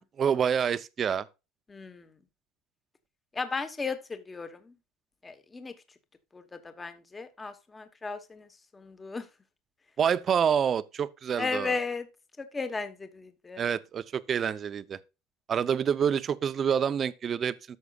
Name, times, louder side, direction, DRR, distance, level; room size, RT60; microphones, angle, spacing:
voice 1, 0.2-1.3 10.0-11.8 13.6-15.0 15.5-17.6, right 7 dB, 25° right, 0.5 m, -27 dB
voice 2, 1.7-2.1 3.3-4.7 5.2-5.7 6.3-8.5 8.7-9.3 11.4-12.1 12.4-13.6, left 4 dB, 10° left, 1.0 m, -35 dB
13.5 x 6.1 x 2.3 m
cardioid pair, 160°, 0 cm